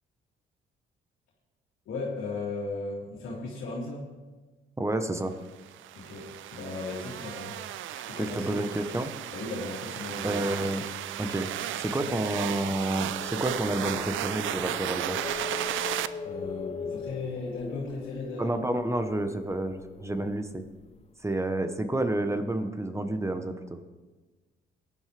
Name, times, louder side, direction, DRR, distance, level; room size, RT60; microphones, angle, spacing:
voice 1, 1.9-4.1 5.9-7.5 7.9-8.6 9.3-10.5 16.2-18.5, left 3 dB, 80° left, -7 dB, 2.8 m, -36 dB
voice 2, 4.8-5.3 8.1-9.1 10.2-10.8 11.2-11.5 11.8-15.2 18.4-20.6 21.2-23.5, right 1 dB, 15° right, 8 dB, 1.0 m, -29 dB
sound 1, 5.6-16.1, right 12 dB, 75° right, 0.5 m, -35 dB
sound 2, 13.0-21.1, left 5 dB, 30° left, 0.8 m, -40 dB
18.0 x 11.0 x 3.4 m, 1.3 s
cardioid pair, 90°, 20 cm